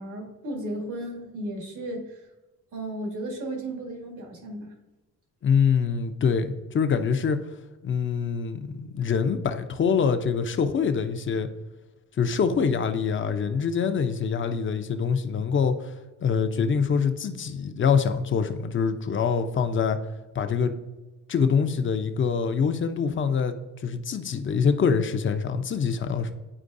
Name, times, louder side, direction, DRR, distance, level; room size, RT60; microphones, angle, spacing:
voice 1, 0.0-2.1 2.7-4.7, right 1 dB, 75° right, 2 dB, 1.6 m, -34 dB
voice 2, 5.4-7.4 7.8-11.5 12.2-15.9 16.2-20.0 20.3-20.7 21.3-23.6 23.8-26.3, left 6 dB, 40° left, 8 dB, 0.7 m, -24 dB
9.9 x 4.5 x 2.6 m, 1.1 s
cardioid pair, 90°, 30 cm